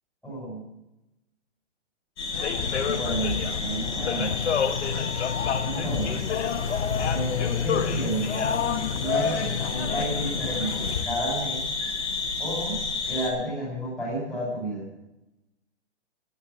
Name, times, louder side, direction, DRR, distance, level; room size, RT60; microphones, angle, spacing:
voice 1, 0.2-0.7 2.8-4.3 5.6-6.2 7.1-8.3 8.9-11.6 12.4-14.9, right 1 dB, ahead, -9 dB, 7.6 m, -31 dB
sound 1, 2.2-13.3, left 4 dB, 40° left, 5.8 m, -32 dB
sound 2, 2.3-11.0, left 7 dB, 75° left, 1.4 m, -28 dB
18.5 x 8.5 x 7.4 m, 0.94 s
hypercardioid pair, 165°, 35 cm